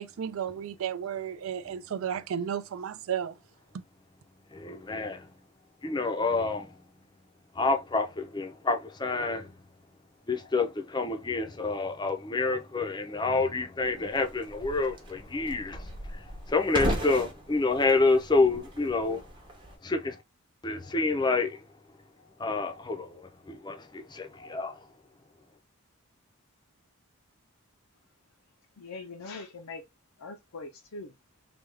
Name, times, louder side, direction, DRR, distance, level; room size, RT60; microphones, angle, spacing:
voice 1, 0.0-3.3, right 8 dB, 70° right, 0.4 m, -33 dB
voice 2, 4.5-5.3 5.8-6.7 7.6-9.5 10.3-19.3 19.8-20.2 20.6-21.6 22.4-24.9, left 3 dB, 20° left, 0.5 m, -28 dB
sound 1, 13.8-19.8, right 1 dB, 20° right, 0.7 m, -37 dB
voice 3, 28.8-29.8 30.2-31.1, left 3 dB, 80° left, 0.6 m, -42 dB
3.4 x 2.3 x 3.2 m
head